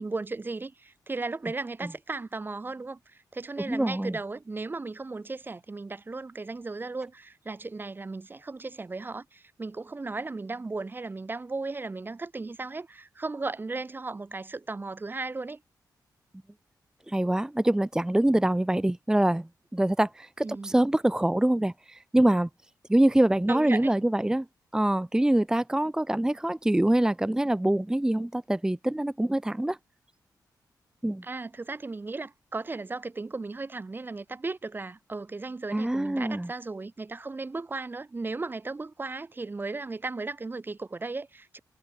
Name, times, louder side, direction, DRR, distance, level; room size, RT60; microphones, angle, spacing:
voice 1, 0.0-15.6 20.4-20.7 23.5-23.9 31.2-41.6, right 3 dB, 25° right, 1.2 m, -36 dB
voice 2, 3.7-4.2 17.1-22.5 22.9-24.5 24.7-29.8 31.0-31.2 35.7-36.5, right 1 dB, 10° right, 0.8 m, -25 dB
cardioid pair, 100°, 8 cm